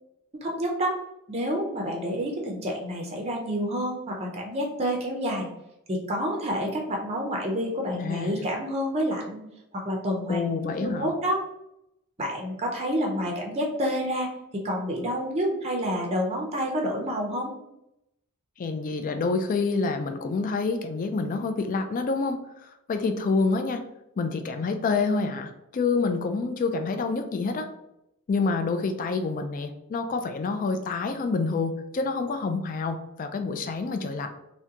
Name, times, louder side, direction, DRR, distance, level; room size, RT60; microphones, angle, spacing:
voice 1, 0.4-1.0 1.3-5.5 5.9-9.4 9.7-10.5 10.8-11.4 12.2-17.5, equal, 30° right, 0 dB, 0.5 m, -28 dB
voice 2, 7.9-8.4 10.3-11.1 18.6-22.4 22.9-23.8 24.2-27.7 28.3-34.3, left 4 dB, 40° left, 7 dB, 0.3 m, -27 dB
3.6 x 2.2 x 2.8 m, 0.83 s
head